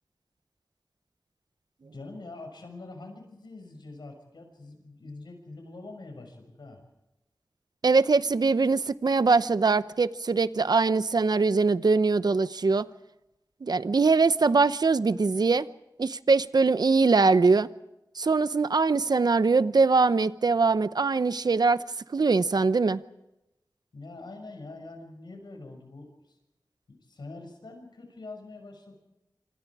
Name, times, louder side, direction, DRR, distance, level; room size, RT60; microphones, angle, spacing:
voice 1, 1.9-6.8 23.9-26.4 26.9-28.9, left 2 dB, 90° left, 6.4 m, -44 dB
voice 2, 7.8-12.9 13.6-15.7 16.0-17.7 18.2-21.8 22.1-23.0, right 4 dB, 70° right, 0.8 m, -22 dB
26.5 x 26.5 x 4.9 m
wide cardioid pair, 60°, 7 cm